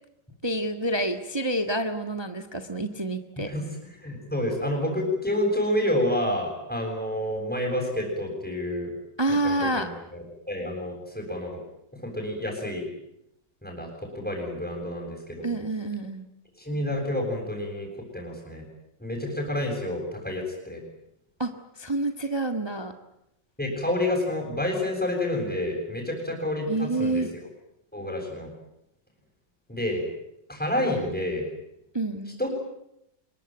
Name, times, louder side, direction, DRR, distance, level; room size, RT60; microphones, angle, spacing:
voice 1, 0.4-3.5 9.2-9.9 15.4-16.3 21.4-21.5 21.8-22.9 26.7-27.3 31.9-32.4, right 2 dB, 15° right, 6 dB, 1.6 m, -28 dB
voice 2, 4.0-9.0 9.3-11.6 11.9-12.9 13.6-15.5 16.6-17.9 18.1-18.7 19.0-20.8 23.6-27.2 27.9-28.5 29.7-30.1 30.5-31.4 32.4-32.5, left 1 dB, 5° left, -1 dB, 7.5 m, -29 dB
26.0 x 23.0 x 9.2 m, 0.80 s
omnidirectional pair, 1.9 m